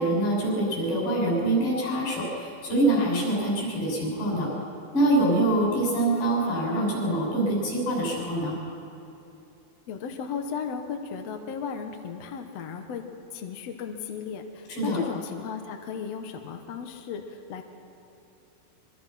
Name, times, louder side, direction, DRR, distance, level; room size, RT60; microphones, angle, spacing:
voice 1, 0.0-4.5 4.9-8.6 14.7-15.0, right 1 dB, 75° left, -3 dB, 8.5 m, -25 dB
voice 2, 9.9-17.6, left 6 dB, 55° left, 4 dB, 2.1 m, -35 dB
25.0 x 24.0 x 5.8 m, 2.8 s
omnidirectional pair, 4.2 m